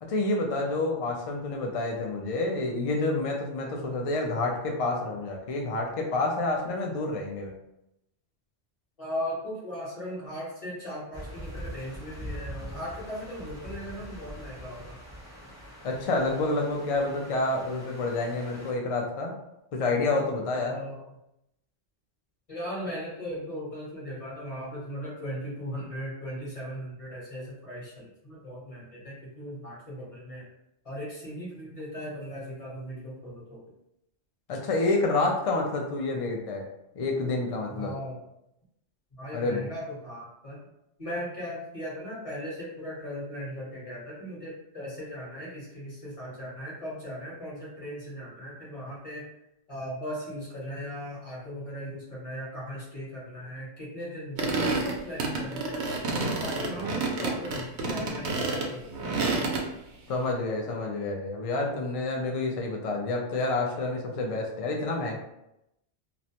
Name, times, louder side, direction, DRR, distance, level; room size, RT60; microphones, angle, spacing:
voice 1, 0.0-7.5 15.8-19.3 19.7-20.8 34.5-36.6 37.0-37.9 39.3-39.6 60.1-65.1, left 2 dB, 50° left, 1 dB, 0.4 m, -28 dB
voice 2, 9.0-15.0 20.5-21.2 22.5-30.5 30.8-33.6 37.8-38.2 39.2-40.6 41.0-49.2 49.7-59.0, equal, 35° left, -7 dB, 1.0 m, -38 dB
sound 1, 11.1-18.7, equal, 5° right, 0.6 m, -43 dB
sound 2, 54.4-59.6, right 3 dB, 85° right, 0.9 m, -29 dB
2.4 x 2.1 x 2.8 m, 0.85 s
omnidirectional pair, 1.1 m